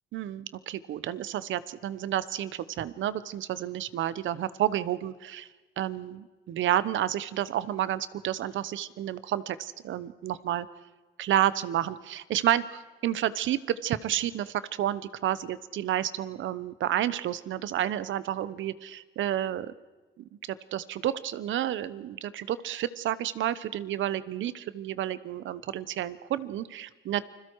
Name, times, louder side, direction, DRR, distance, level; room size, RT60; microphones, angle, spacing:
voice 1, 0.1-5.5 5.8-10.7 11.2-19.7 20.2-27.2, right 12 dB, 75° right, 16 dB, 1.0 m, -30 dB
29.5 x 21.5 x 4.7 m, 1.2 s
cardioid pair, 90°, 20 cm